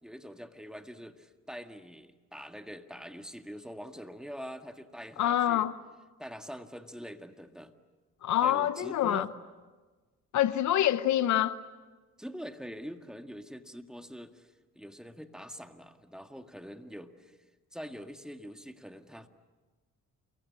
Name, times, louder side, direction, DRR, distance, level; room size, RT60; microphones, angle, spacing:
voice 1, 0.0-5.7 6.2-7.7 8.4-9.3 12.2-17.4 17.7-19.3, equal, ahead, 1.9 m, -44 dB
voice 2, 5.2-5.8 8.2-9.3 10.3-11.6, left 12 dB, 70° left, 1.0 m, -26 dB
29.0 x 23.5 x 8.6 m
cardioid pair, 90°, 30 cm